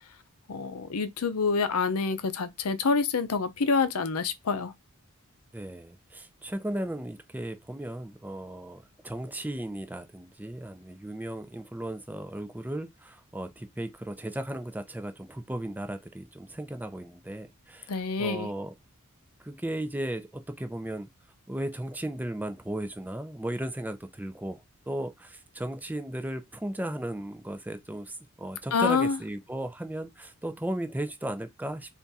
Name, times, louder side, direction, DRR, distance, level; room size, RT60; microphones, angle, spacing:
voice 1, 0.5-4.7 17.9-18.5 28.7-29.2, left 4 dB, 85° left, 0.6 m, -27 dB
voice 2, 5.5-17.9 18.2-18.7 19.4-21.1 21.5-31.9, right 1 dB, 10° right, 0.5 m, -36 dB
3.5 x 2.5 x 4.0 m
head